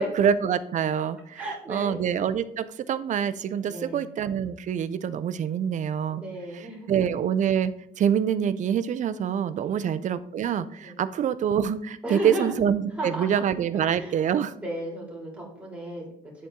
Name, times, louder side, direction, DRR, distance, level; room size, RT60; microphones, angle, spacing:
voice 1, 0.0-1.4 1.7-6.2 6.5-14.5, right 8 dB, 45° right, 13 dB, 0.5 m, -26 dB
voice 2, 1.3-2.0 3.6-4.0 6.1-7.1 9.6-9.9 10.8-11.0 12.0-12.6 13.0-13.3 13.7-16.1, right 1 dB, 10° right, -4 dB, 3.0 m, -34 dB
11.0 x 4.2 x 3.7 m, 0.70 s
cardioid pair, 110°, 17 cm